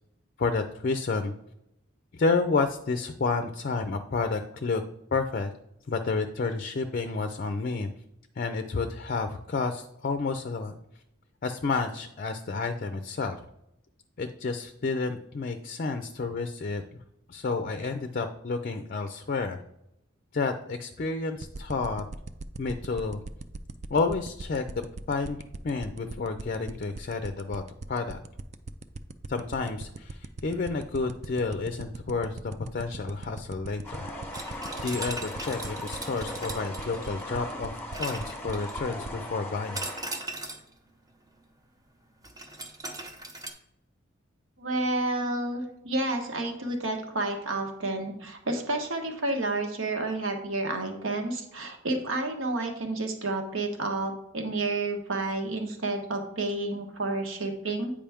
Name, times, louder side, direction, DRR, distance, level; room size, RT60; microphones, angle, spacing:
voice 1, 0.4-1.3 2.1-4.8 5.1-5.5 5.9-7.9 8.4-10.8 11.4-13.4 14.2-16.8 17.3-19.6 20.3-22.0 22.6-23.2 23.9-24.8 25.1-25.4 25.6-27.6 27.9-28.2 29.3-32.4 32.7-34.0 34.4-39.8, left 4 dB, 45° left, 8 dB, 0.4 m, -30 dB
sound 1, 21.4-39.1, right 3 dB, 35° right, 0.3 m, -38 dB
sound 2, 33.8-40.2, left 1 dB, 10° left, 1.1 m, -39 dB
sound 3, 34.3-37.3 37.9-38.9 39.7-40.7 42.2-43.5, right 2 dB, 20° right, 0.7 m, -39 dB
voice 2, 44.6-57.9, right 2 dB, 70° right, 4 dB, 1.2 m, -30 dB
8.7 x 5.0 x 3.5 m, 0.83 s
head